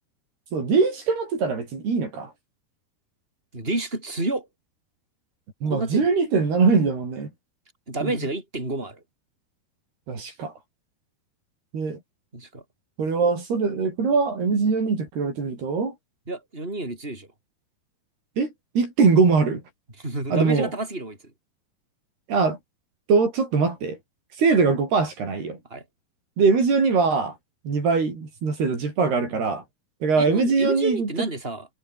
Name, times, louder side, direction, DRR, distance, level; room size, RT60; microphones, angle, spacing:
voice 1, 0.5-2.3 5.6-7.3 8.0-8.1 10.1-10.5 11.7-12.0 13.0-15.9 18.4-19.6 20.3-20.7 22.3-22.6 23.1-24.0 24.4-25.6 26.4-27.4 27.7-29.6 30.0-31.1, right 4 dB, 75° right, 8.7 m, -22 dB
voice 2, 3.5-4.5 5.6-6.1 7.9-9.0 12.3-12.6 16.3-17.3 20.0-21.3 25.7-25.8 29.2-29.4 30.2-31.7, right 2 dB, 15° right, 7.8 m, -30 dB
omnidirectional pair, 4.6 m